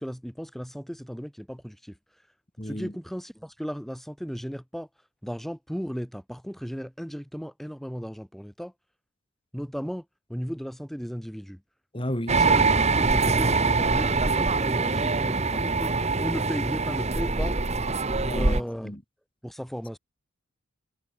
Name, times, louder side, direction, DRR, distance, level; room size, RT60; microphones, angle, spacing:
voice 1, 0.0-2.0 2.6-4.9 5.2-8.7 9.5-11.6 12.4-17.5 18.1-18.9 19.4-20.0, equal, ahead, 7.0 m, -35 dB
voice 2, 2.6-2.9 11.9-12.4 18.2-19.0, equal, 25° left, 6.4 m, -33 dB
sound 1, 12.3-18.6, right 3 dB, 30° right, 1.5 m, -24 dB
head